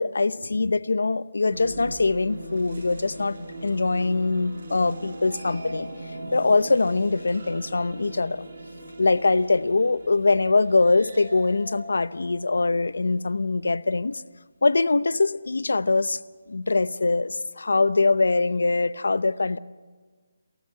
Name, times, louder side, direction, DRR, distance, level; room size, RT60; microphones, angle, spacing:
voice 1, 0.0-5.9 6.3-8.5 9.0-14.2 14.6-16.2 16.5-19.6, left 3 dB, 85° left, 0.7 m, -23 dB
sound 1, 1.4-13.6, right 1 dB, 50° right, 6.6 m, -40 dB
27.0 x 14.0 x 7.6 m
hypercardioid pair, 170°, 0 cm